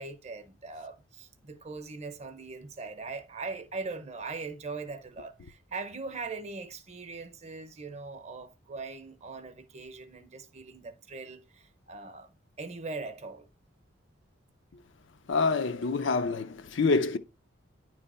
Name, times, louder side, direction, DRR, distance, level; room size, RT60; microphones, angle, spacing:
voice 1, 0.0-13.5, right 3 dB, 35° right, 0.7 m, -41 dB
voice 2, 15.3-17.2, left 4 dB, 65° left, 0.6 m, -27 dB
9.8 x 3.3 x 5.4 m
head